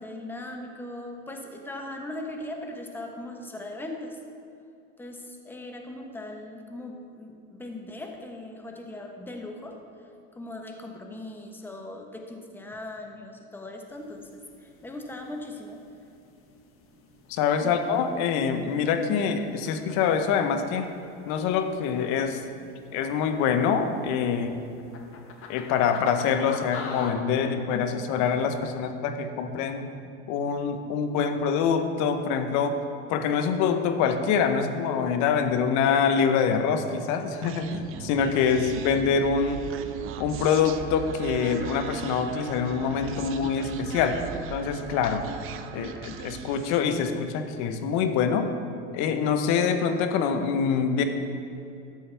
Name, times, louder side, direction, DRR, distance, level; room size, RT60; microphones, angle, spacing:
voice 1, 0.0-4.2 5.0-9.8 10.3-15.8 17.6-17.8, left 1 dB, 5° left, 2 dB, 1.1 m, -39 dB
sound 1, 13.9-27.1, left 5 dB, 40° left, 1.3 m, -46 dB
voice 2, 17.3-20.9 21.3-22.4 22.9-24.6 25.5-29.9 30.3-32.8 33.1-39.6 40.2-44.2 44.5-45.2 45.7-48.5 48.9-51.0, left 6 dB, 60° left, 7 dB, 1.0 m, -25 dB
Human voice, 37.4-46.9, right 8 dB, 40° right, 0.6 m, -38 dB
13.0 x 7.5 x 3.4 m, 2.6 s
supercardioid pair, 105°, 33 cm